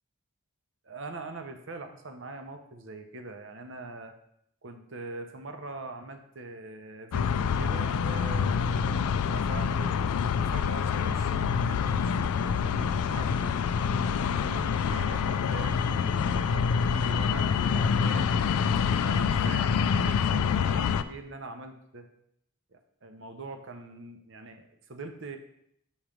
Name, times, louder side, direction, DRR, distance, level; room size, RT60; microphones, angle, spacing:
voice 1, 0.8-4.1 4.6-9.9 10.4-13.8 14.3-18.3 19.0-22.1 22.7-25.4, right 3 dB, 55° right, 6 dB, 0.7 m, -43 dB
sound 1, 7.1-21.0, left 6 dB, 85° left, 0.3 m, -26 dB
7.1 x 3.1 x 5.0 m, 0.72 s
head